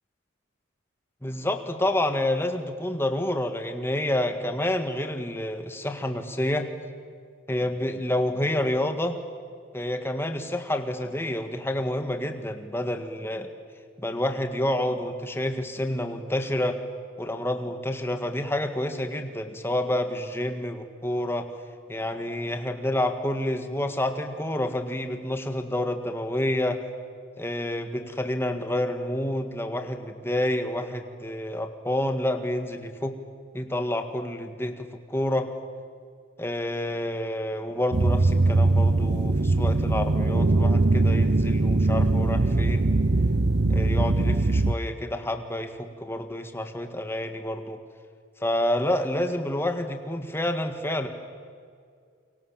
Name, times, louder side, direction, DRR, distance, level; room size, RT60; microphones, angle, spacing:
voice 1, 1.2-6.7 7.5-9.2 9.7-13.5 14.0-16.8 17.2-21.5 21.9-26.8 27.4-33.1 33.5-35.5 36.4-42.9 43.7-47.8 48.4-51.1, left 1 dB, 10° left, 6 dB, 1.8 m, -28 dB
sound 1, 37.9-44.7, right 2 dB, 55° right, 0.7 m, -21 dB
29.5 x 24.0 x 7.5 m, 2.2 s
head